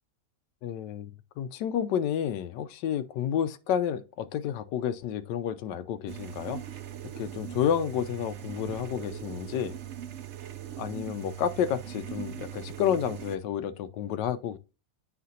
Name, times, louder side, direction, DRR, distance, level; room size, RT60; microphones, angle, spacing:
voice 1, 0.6-6.6 7.2-9.8 10.8-14.6, left 9 dB, 85° left, 1.3 m, -30 dB
sound 1, 6.1-13.4, right 10 dB, 60° right, 0.7 m, -40 dB
8.3 x 5.1 x 2.7 m
omnidirectional pair, 1.8 m